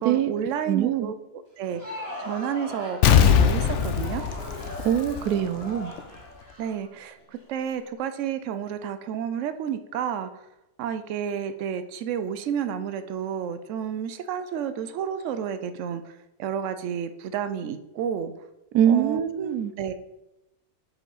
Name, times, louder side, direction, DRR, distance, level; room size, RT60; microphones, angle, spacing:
voice 1, 0.0-4.2 6.6-7.2 7.5-10.3 10.8-18.3 18.8-19.9, right 8 dB, 65° right, 10 dB, 0.8 m, -31 dB
voice 2, 0.7-1.1 4.8-5.9 18.7-19.7, right 10 dB, 90° right, 11 dB, 1.1 m, -23 dB
Crowd, 1.5-7.4, left 1 dB, 40° right, 2.1 m, -40 dB
Explosion, 3.0-5.6 6.0-6.1, left 8 dB, 65° left, 0.8 m, -21 dB
7.4 x 5.4 x 3.9 m, 0.93 s
omnidirectional pair, 1.6 m